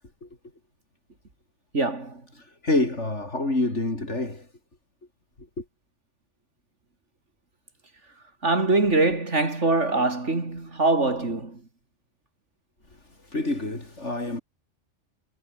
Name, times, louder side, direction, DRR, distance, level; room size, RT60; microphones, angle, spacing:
voice 1, 1.7-2.2 8.4-11.6, right 2 dB, 80° right, 4.2 m, -23 dB
voice 2, 2.4-4.5 5.6-5.7 13.3-14.4, left 2 dB, 80° left, 5.5 m, -27 dB
omnidirectional pair, 1.2 m